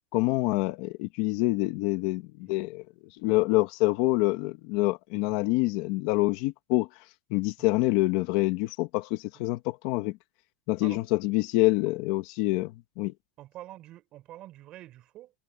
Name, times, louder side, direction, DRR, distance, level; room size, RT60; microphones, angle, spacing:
voice 1, 0.1-2.8 3.2-6.9 7.3-10.2 10.7-13.1, left 20 dB, 50° left, 1.3 m, -26 dB
voice 2, 13.4-15.3, right 14 dB, 30° right, 4.7 m, -47 dB
supercardioid pair, 170°, 3 cm